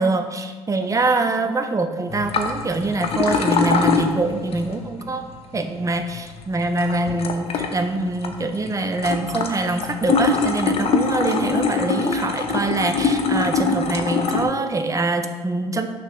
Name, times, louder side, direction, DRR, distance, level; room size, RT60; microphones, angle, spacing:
voice 1, 0.0-5.2 5.5-15.9, right 2 dB, 25° right, 7 dB, 0.7 m, -24 dB
sound 1, 2.1-14.4, left 5 dB, 55° left, 0.8 m, -24 dB
5.9 x 3.4 x 5.9 m, 1.4 s
supercardioid pair, 65°, 12 cm